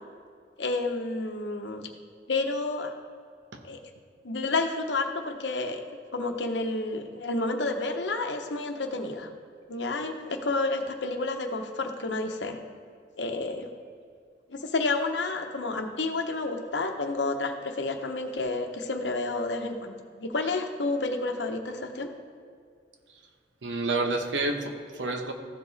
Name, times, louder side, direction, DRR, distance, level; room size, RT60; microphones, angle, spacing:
voice 1, 0.6-1.9 2.3-2.9 3.6-3.8 4.2-5.8 6.1-9.3 9.7-12.6 13.2-13.7 14.5-22.1, left 3 dB, 80° left, 5 dB, 0.9 m, -30 dB
voice 2, 23.6-25.3, right 2 dB, 85° right, 5 dB, 1.0 m, -29 dB
14.5 x 4.9 x 4.0 m, 2.2 s
head